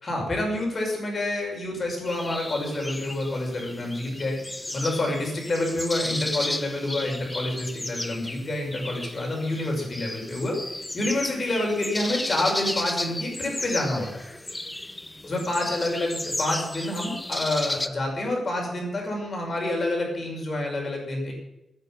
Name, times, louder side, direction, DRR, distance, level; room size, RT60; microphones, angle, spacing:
voice 1, 0.0-4.4 4.7-14.2 15.2-21.3, left 1 dB, 35° left, 0 dB, 5.9 m, -28 dB
sound 1, 2.1-17.9, left 1 dB, 10° left, 0.8 m, -34 dB
13.5 x 9.5 x 9.0 m, 0.90 s
wide cardioid pair, 145°, 0 cm